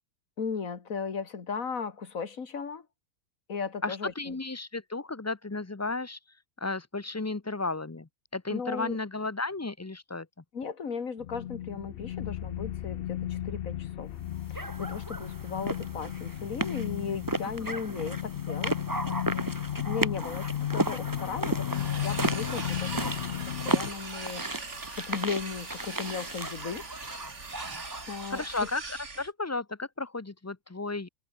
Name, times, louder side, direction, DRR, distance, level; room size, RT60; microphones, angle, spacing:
voice 1, 0.4-2.9 3.5-4.4 8.5-9.0 10.5-14.2 14.5-18.8 19.6-23.1 23.5-26.9 28.1-28.4, left 5 dB, 80° left, 2.3 m, -36 dB
voice 2, 3.8-6.2 6.6-10.3 28.3-31.1, left 3 dB, 20° left, 0.5 m, -34 dB
sound 1, 11.2-23.9, left 11 dB, 60° left, 0.6 m, -34 dB
sound 2, 14.5-28.6, right 2 dB, 15° right, 1.7 m, -35 dB
sound 3, 21.7-29.3, right 4 dB, 60° right, 2.9 m, -41 dB
omnidirectional pair, 1.4 m